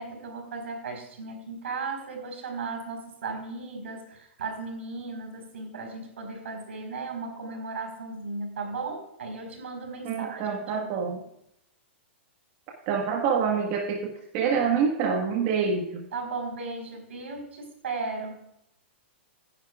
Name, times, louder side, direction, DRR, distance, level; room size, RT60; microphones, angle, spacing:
voice 1, 0.0-10.9 16.1-18.5, right 3 dB, 85° right, 4 dB, 4.2 m, -36 dB
voice 2, 10.0-11.2 12.8-16.0, right 6 dB, 40° right, 1 dB, 1.6 m, -26 dB
16.0 x 10.0 x 2.4 m, 0.79 s
hypercardioid pair, 145°, 7 cm